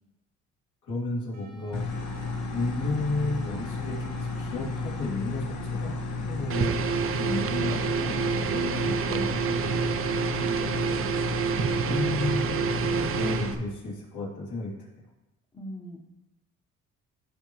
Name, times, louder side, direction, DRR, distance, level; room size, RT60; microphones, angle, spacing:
voice 1, 0.9-1.8 2.5-5.9 6.3-6.8 7.2-9.9 11.6-14.7, left 2 dB, 80° left, -5 dB, 3.4 m, -33 dB
sound 1, 1.3-6.4, left 1 dB, 75° right, 1.7 m, -50 dB
sound 2, 1.7-13.5, left 3 dB, 60° left, 1.3 m, -33 dB
sound 3, 6.5-13.6, right 7 dB, 45° right, 0.6 m, -28 dB
voice 2, 10.4-11.1 15.5-16.0, equal, 15° left, -1 dB, 1.2 m, -41 dB
15.0 x 5.2 x 3.2 m, 0.97 s
cardioid pair, 100°, 30 cm